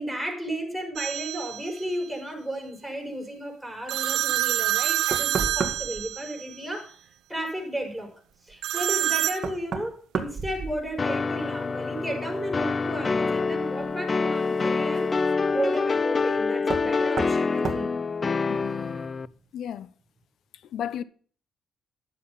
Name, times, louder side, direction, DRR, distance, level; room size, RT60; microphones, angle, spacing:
voice 1, 0.0-6.9 7.3-8.1 8.4-15.1 15.5-18.1 18.6-18.7, right 1 dB, 5° right, 5.0 m, -33 dB
sound 1, 1.0-1.7 3.9-6.5 8.6-9.4, right 14 dB, 85° right, 0.8 m, -27 dB
Knock, 5.1-6.1 8.5-8.6 9.4-11.2 11.5-12.1 13.8-13.9 16.6-16.9 17.2-17.4 17.6-17.9, right 5 dB, 45° right, 2.2 m, -32 dB
sound 2, 11.0-19.3, left 4 dB, 30° left, 0.5 m, -26 dB
voice 2, 18.5-19.0 19.5-19.9 20.6-21.0, left 9 dB, 70° left, 0.7 m, -34 dB
11.0 x 7.8 x 5.6 m
cardioid pair, 90°, 0 cm